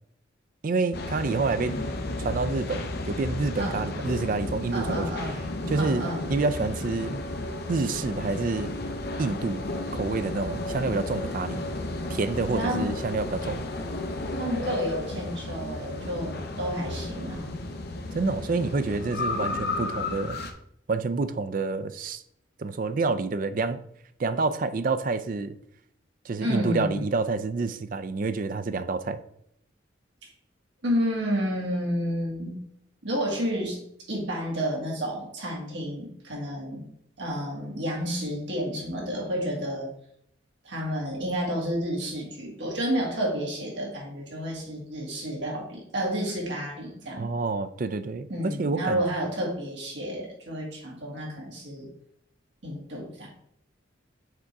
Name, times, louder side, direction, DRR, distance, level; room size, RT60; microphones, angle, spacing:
voice 1, 0.6-1.8 2.2-5.1 5.7-7.2 7.7-8.8 9.2-9.6 9.9-11.6 12.1-13.7 18.1-20.4 20.9-22.2 22.6-23.8 24.2-25.6 26.3-29.2 47.2-49.0, right 3 dB, 45° right, 12 dB, 0.4 m, -28 dB
sound 1, 0.9-20.5, left 2 dB, 55° left, 0.7 m, -33 dB
voice 2, 3.6-3.9 4.7-5.4 5.7-6.3 12.5-13.0 14.3-17.6 26.4-27.1 30.8-32.6 33.0-36.9 37.2-39.9 40.6-47.3 48.3-51.9 52.6-53.3, equal, 65° right, -2 dB, 2.2 m, -30 dB
6.5 x 3.7 x 4.6 m, 0.72 s
head